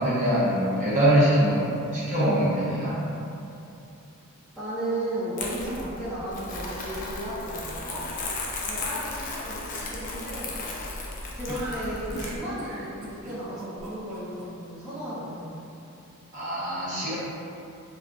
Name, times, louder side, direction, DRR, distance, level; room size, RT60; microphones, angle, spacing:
voice 1, 0.0-2.9 16.3-17.1, right 1 dB, 35° right, -10 dB, 0.8 m, -23 dB
voice 2, 4.6-8.0 8.6-10.6 11.3-15.5, right 1 dB, ahead, -14 dB, 0.7 m, -34 dB
Crumpling crinkling, 5.4-12.4, left 2 dB, 40° left, 0.4 m, -35 dB
sound 1, 11.5-14.4, right 1 dB, 80° right, 0.5 m, -38 dB
3.8 x 2.3 x 2.3 m, 2.8 s
head